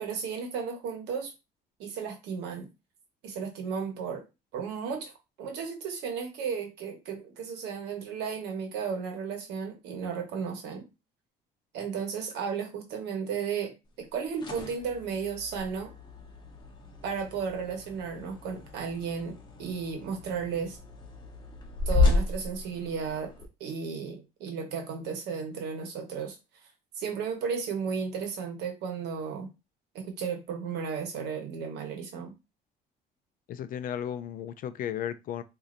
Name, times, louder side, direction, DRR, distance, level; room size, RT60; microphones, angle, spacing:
voice 1, 0.0-1.3 1.8-2.7 3.2-4.2 4.5-5.1 5.4-10.9 11.7-15.9 17.0-20.8 21.9-23.3 23.6-26.4 27.0-29.5 29.9-32.3, right 6 dB, 85° right, 1.1 m, -34 dB
sound 1, 14.1-23.4, left 3 dB, 25° left, 1.0 m, -32 dB
voice 2, 33.5-35.4, left 9 dB, 55° left, 0.4 m, -34 dB
4.2 x 2.7 x 2.5 m
cardioid pair, 110°, 17 cm